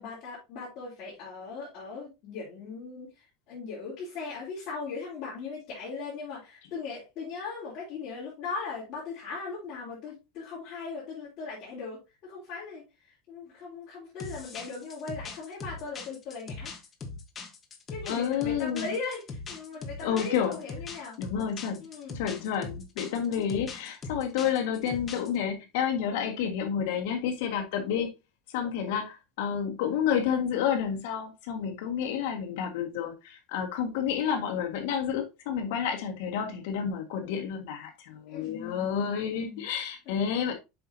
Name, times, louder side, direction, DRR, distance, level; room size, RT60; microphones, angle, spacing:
voice 1, 0.0-16.7 17.9-21.2 21.8-22.2 38.3-39.6 40.1-40.2, left 4 dB, 45° left, 3.4 m, -39 dB
sound 1, 14.2-25.4, left 4 dB, 20° left, 1.2 m, -41 dB
voice 2, 18.0-18.9 20.0-20.6 21.2-21.8 22.1-28.1 28.5-40.5, left 8 dB, 70° left, 1.6 m, -30 dB
7.6 x 5.5 x 2.7 m
supercardioid pair, 160°, 0 cm